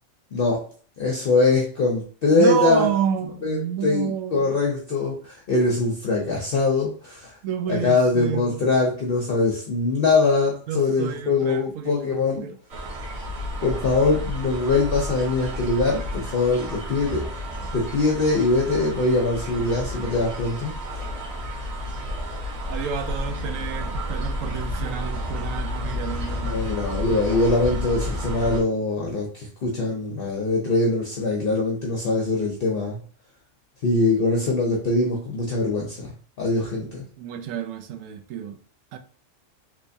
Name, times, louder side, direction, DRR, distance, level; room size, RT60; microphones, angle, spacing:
voice 1, 0.3-0.6 1.0-2.9 3.4-7.3 7.7-12.4 13.6-17.2 17.7-20.7 26.4-33.0 33.8-36.1 36.4-37.0, left 3 dB, 55° left, 0.8 m, -22 dB
voice 2, 2.3-4.5 7.4-8.7 10.7-12.6 22.7-26.6 37.2-38.6 38.9-39.0, right 9 dB, 90° right, 1.0 m, -29 dB
sound 1, 12.7-28.6, equal, 70° right, 1.3 m, -31 dB
3.3 x 3.1 x 2.6 m
omnidirectional pair, 1.3 m